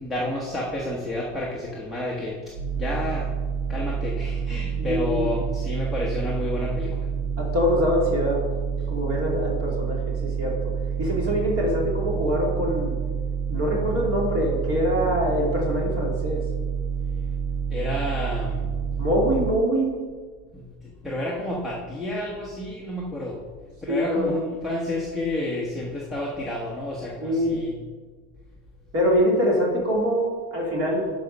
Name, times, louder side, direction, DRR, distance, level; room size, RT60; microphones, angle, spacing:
voice 1, 0.0-2.4 2.7-3.3 3.7-7.1 17.7-18.7 20.5-23.4 23.8-27.7, left 1 dB, ahead, -5 dB, 1.1 m, -30 dB
sound 1, 2.6-19.5, right 6 dB, 75° right, 1.6 m, -28 dB
voice 2, 4.8-5.3 7.4-8.4 8.9-10.6 11.0-13.0 13.5-16.4 19.0-19.9 23.9-24.3 27.2-27.6 28.9-31.1, equal, 30° right, -2 dB, 2.8 m, -24 dB
11.5 x 5.3 x 5.4 m, 1.5 s
supercardioid pair, 150°, 47 cm